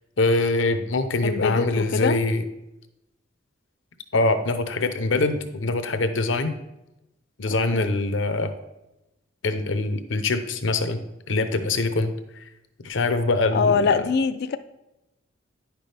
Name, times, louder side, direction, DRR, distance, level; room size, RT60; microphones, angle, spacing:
voice 1, 0.2-2.4 4.1-6.5 7.4-8.5 9.4-11.0 11.3-12.1 12.8-14.1, left 2 dB, 75° left, 9 dB, 0.7 m, -23 dB
voice 2, 1.2-2.2 7.7-8.0 13.5-14.6, left 5 dB, 55° left, 11 dB, 0.4 m, -23 dB
9.8 x 6.0 x 3.4 m, 0.92 s
head